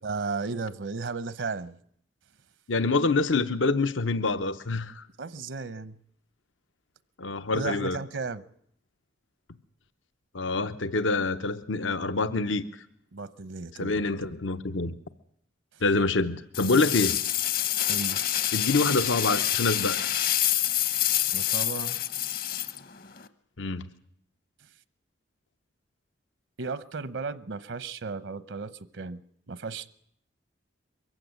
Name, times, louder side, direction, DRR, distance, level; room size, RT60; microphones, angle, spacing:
voice 1, 0.0-1.8 5.2-6.0 7.5-8.4 13.1-14.0 15.7-15.8 17.9-18.2 21.3-22.0 26.6-29.2 29.5-29.9, right 4 dB, 75° right, 15 dB, 0.8 m, -34 dB
voice 2, 2.7-5.0 7.2-8.0 10.3-12.6 13.7-14.9 15.8-17.2 18.5-20.0 23.6-23.8, left 3 dB, 85° left, 12 dB, 0.9 m, -26 dB
sound 1, 16.5-23.3, left 12 dB, 50° left, 0.9 m, -27 dB
23.0 x 15.5 x 9.3 m, 0.68 s
head